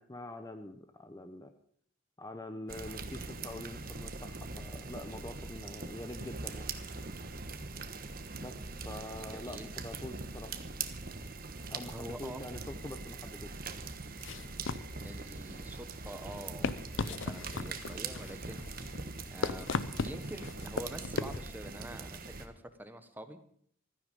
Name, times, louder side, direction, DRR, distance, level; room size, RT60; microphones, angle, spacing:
voice 1, 0.0-1.5 2.2-6.7 8.4-8.6 8.8-10.6 11.7-13.5, left 1 dB, 15° left, 8 dB, 0.7 m, -45 dB
sound 1, 2.7-22.5, right 4 dB, 45° right, 1.2 m, -42 dB
voice 2, 9.3-9.7 11.9-12.5 15.0-18.6 19.3-22.5 22.8-23.4, right 1 dB, 10° right, 9 dB, 1.2 m, -46 dB
sound 2, 14.2-21.4, left 4 dB, 70° left, 0.7 m, -38 dB
15.5 x 13.5 x 5.4 m, 0.62 s
head